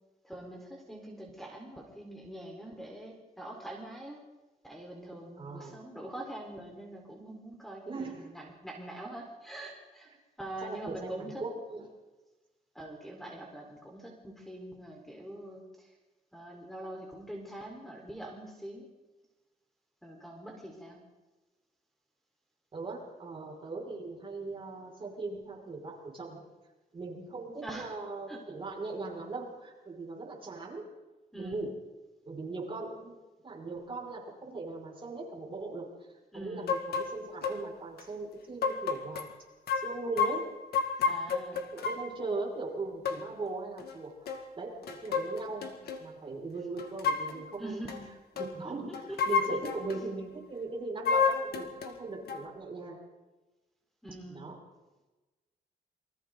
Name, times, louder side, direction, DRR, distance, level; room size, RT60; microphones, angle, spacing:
voice 1, 0.2-4.2 4.6-10.1 10.4-11.4 12.7-15.9 16.3-18.9 20.0-21.0 27.6-27.9 28.3-28.4 31.3-31.7 36.3-36.8 41.0-41.6 47.6-48.2 48.6-49.6 54.0-54.5, right 1 dB, ahead, 0 dB, 4.3 m, -44 dB
voice 2, 5.4-5.7 7.9-8.3 10.6-11.9 22.7-26.4 26.9-30.8 31.3-31.7 32.3-33.2 33.4-35.9 36.3-39.3 39.8-40.4 41.7-47.8 48.4-53.0 54.3-54.6, right 3 dB, 35° right, -2 dB, 5.7 m, -39 dB
sound 1, 36.7-37.1 37.4-37.6 38.0-38.1 38.6-39.3 39.7-42.1 43.1-43.2 43.8-43.9 44.3-44.5 44.8-46.0 46.8-47.4 47.9-48.0 48.4-48.5 48.9-50.0 51.1-52.0 52.3-52.4, left 5 dB, 80° left, 2.1 m, -31 dB
28.5 x 24.0 x 4.0 m, 1.2 s
wide cardioid pair, 140°, 16 cm